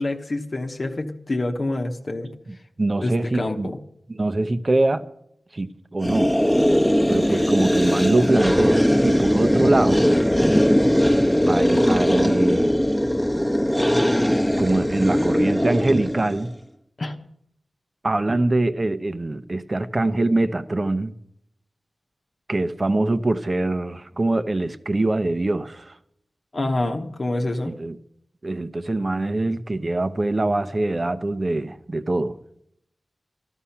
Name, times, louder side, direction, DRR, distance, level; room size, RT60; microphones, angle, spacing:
voice 1, 0.0-2.3 3.0-3.8 7.3-7.4 17.0-17.1 26.5-27.7, left 2 dB, 50° left, 1.1 m, -27 dB
voice 2, 2.5-3.7 4.1-5.0 5.5-6.3 7.1-10.0 11.5-12.7 14.6-16.5 18.0-21.1 22.5-26.0 27.6-28.0 28.4-32.4, right 2 dB, 35° right, 0.8 m, -23 dB
sound 1, 6.0-16.5, equal, 5° left, 1.1 m, -19 dB
13.0 x 13.0 x 5.8 m
wide cardioid pair, 70°, 0 cm